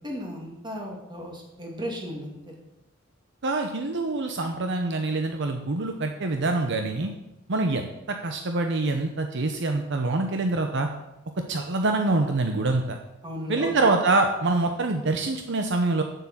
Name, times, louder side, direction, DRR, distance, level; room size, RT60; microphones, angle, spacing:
voice 1, 0.0-2.5 13.2-13.8, equal, 20° right, -1 dB, 2.6 m, -35 dB
voice 2, 3.4-7.1 7.5-10.9 11.4-13.0 13.5-16.0, right 2 dB, 60° right, 5 dB, 0.8 m, -25 dB
8.4 x 7.8 x 7.4 m, 0.94 s
head